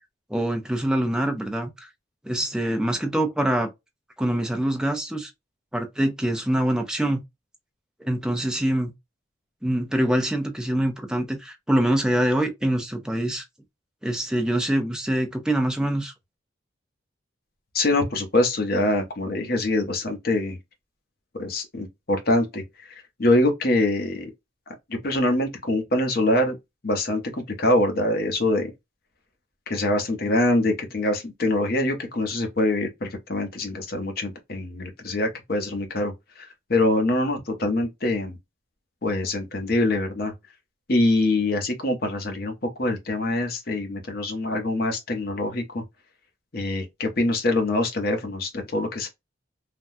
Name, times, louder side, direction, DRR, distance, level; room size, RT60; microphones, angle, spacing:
voice 1, 0.3-1.9 2.2-3.7 4.2-5.3 5.7-7.2 8.0-8.9 9.6-13.4 14.0-16.1, right 1 dB, 5° right, 0.5 m, -24 dB
voice 2, 17.7-20.6 21.3-22.6 23.2-24.3 24.7-26.6 26.8-28.7 29.7-38.4 39.0-40.3 40.9-45.8 46.5-49.1, left 1 dB, 50° left, 0.8 m, -24 dB
3.4 x 2.2 x 2.6 m
head